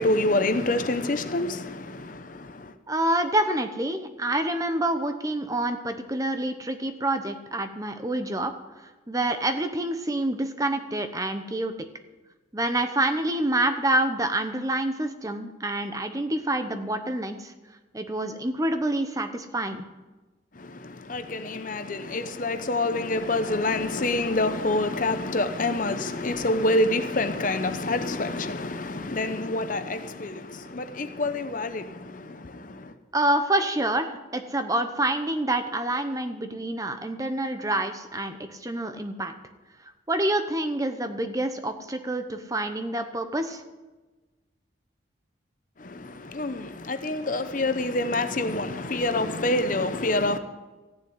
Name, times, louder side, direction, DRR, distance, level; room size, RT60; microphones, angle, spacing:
voice 1, 0.0-2.7 20.5-32.9 45.8-50.4, left 2 dB, 45° left, 0.8 m, -27 dB
voice 2, 2.9-8.5 8.8-11.7 12.5-17.5 17.9-19.8 33.1-39.3 40.1-43.6, right 1 dB, 15° right, 0.9 m, -27 dB
14.5 x 6.9 x 9.4 m
head